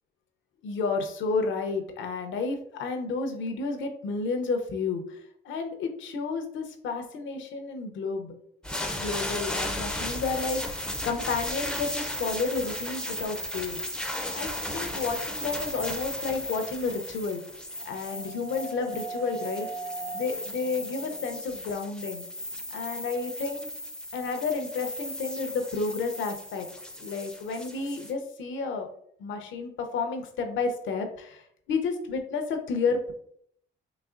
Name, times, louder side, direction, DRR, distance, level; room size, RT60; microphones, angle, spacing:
voice 1, 0.6-8.3 8.9-10.6 11.0-13.8 14.3-17.4 17.9-19.7 20.1-22.3 22.7-23.7 24.1-26.7 27.0-28.9 29.2-33.1, left 4 dB, 75° left, 5 dB, 0.6 m, -31 dB
sound 1, 8.6-28.1, left 1 dB, 5° left, 0.4 m, -35 dB
sound 2, 17.1-22.8, right 5 dB, 40° right, 0.9 m, -42 dB
4.0 x 3.0 x 2.4 m, 0.68 s
cardioid pair, 90°, 20 cm